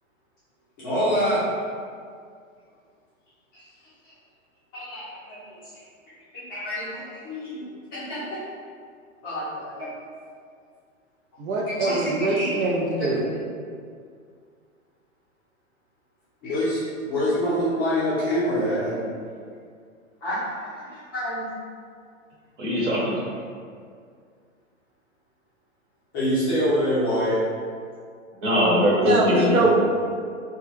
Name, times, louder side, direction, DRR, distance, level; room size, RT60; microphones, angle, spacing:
voice 1, 0.8-1.4 4.7-5.4 6.3-7.6 7.9-8.4 9.2-9.9 11.7-12.6 16.4-19.1 20.2-21.5 26.1-27.4, equal, 20° left, -12 dB, 0.3 m, -26 dB
voice 2, 11.4-13.4 29.0-29.7, right 2 dB, 75° right, -3 dB, 0.6 m, -23 dB
voice 3, 22.6-23.4 28.4-29.7, left 1 dB, 60° right, -6 dB, 1.1 m, -21 dB
2.2 x 2.2 x 3.1 m, 2.2 s
hypercardioid pair, 115°, 41 cm